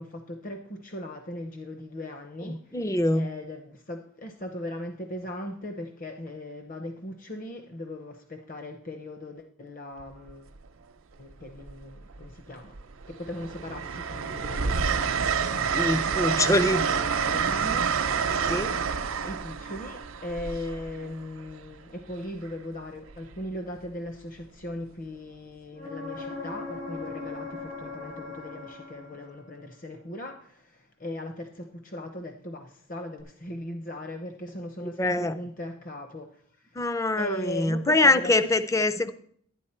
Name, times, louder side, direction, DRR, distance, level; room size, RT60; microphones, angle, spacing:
voice 1, 0.0-2.8 3.1-10.5 11.2-12.8 13.1-14.8 15.5-16.4 16.7-18.4 19.2-36.8 37.2-38.5 38.9-39.1, left 1 dB, 40° left, 5 dB, 0.7 m, -39 dB
voice 2, 2.4-3.3 15.7-16.9 18.5-18.8 35.0-35.4 36.8-39.1, left 2 dB, 15° left, 13 dB, 0.4 m, -24 dB
Train, 10.0-10.3 11.6-12.3 12.7-21.5 23.1-23.3, right 6 dB, 65° right, 0.6 m, -28 dB
sound 1, 25.7-29.5 33.2-33.3, left 3 dB, 70° left, 4.2 m, -39 dB
11.5 x 10.0 x 4.4 m, 0.62 s
head